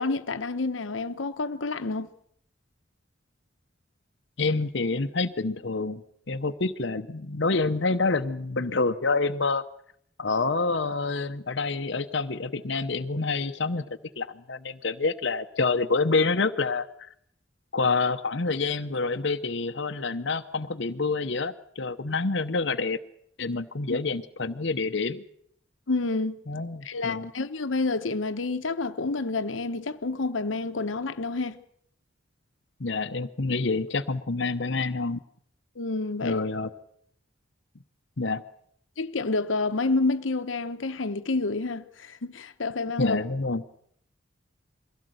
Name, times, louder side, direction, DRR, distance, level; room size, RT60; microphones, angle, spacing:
voice 1, 0.0-2.1 23.9-24.0 25.9-26.4 26.8-31.6 35.8-36.4 39.0-43.2, left 3 dB, 90° left, 1.0 m, -29 dB
voice 2, 4.4-6.0 6.3-9.6 10.2-13.8 14.2-16.9 17.7-23.0 23.4-25.2 26.5-27.3 32.8-35.2 36.2-36.7 38.2-38.4 43.0-43.6, left 3 dB, 65° left, 0.9 m, -27 dB
22.5 x 16.5 x 7.9 m
head